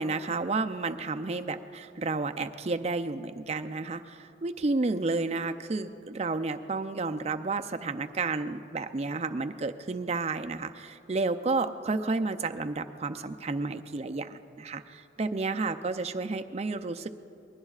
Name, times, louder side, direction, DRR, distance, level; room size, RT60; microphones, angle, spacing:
voice 1, 0.0-17.1, right 3 dB, 35° right, 8 dB, 0.5 m, -31 dB
26.5 x 20.5 x 2.4 m, 2.8 s
head